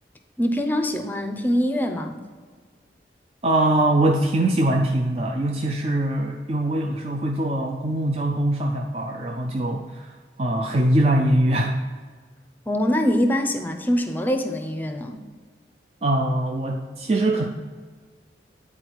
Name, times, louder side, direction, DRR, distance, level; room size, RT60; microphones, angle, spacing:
voice 1, 0.4-2.2 12.7-15.2, equal, 10° left, 5 dB, 0.6 m, -23 dB
voice 2, 3.4-11.8 16.0-17.4, right 1 dB, 35° right, 1 dB, 0.5 m, -22 dB
9.8 x 4.3 x 4.5 m, 1.5 s
head